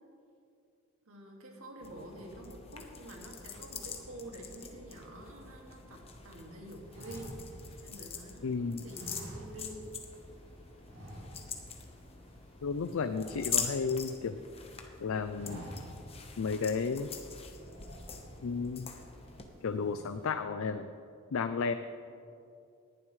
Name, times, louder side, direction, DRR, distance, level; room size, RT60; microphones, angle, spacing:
voice 1, 1.1-7.4 7.8-9.8 11.3-11.5, right 1 dB, 90° right, 0 dB, 2.1 m, -48 dB
sound 1, 1.8-19.4, left 6 dB, 30° left, 1.0 m, -43 dB
sound 2, 6.9-8.4 8.9-10.0 10.2-10.4 10.8-11.7 12.0-12.2 12.5-14.2 14.7-14.9 15.2-16.2 16.6-16.7 17.5-18.6 19.1-19.4 19.7-20.3, equal, 65° right, 2.5 m, -49 dB
voice 2, 8.4-8.8 12.6-14.4 15.0-15.7 16.4-17.1 18.4-18.9 19.6-20.9 21.3-21.7, left 5 dB, 85° left, 9 dB, 0.4 m, -33 dB
18.5 x 11.0 x 3.2 m, 2.5 s
head